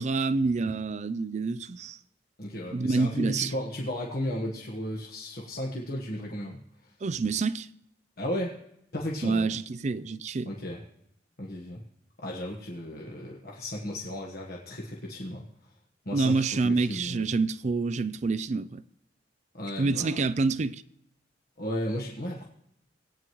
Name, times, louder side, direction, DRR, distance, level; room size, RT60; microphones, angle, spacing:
voice 1, 0.0-2.0 2.7-3.5 7.0-7.7 9.2-10.5 16.1-18.8 19.8-20.8, right 4 dB, 40° right, 0.4 m, -27 dB
voice 2, 2.4-6.6 8.2-8.6 8.9-9.5 10.5-10.8 11.4-11.8 12.2-15.4 16.0-17.3 19.5-20.2 21.6-22.4, left 1 dB, 55° left, 1.3 m, -34 dB
18.5 x 9.2 x 3.1 m
head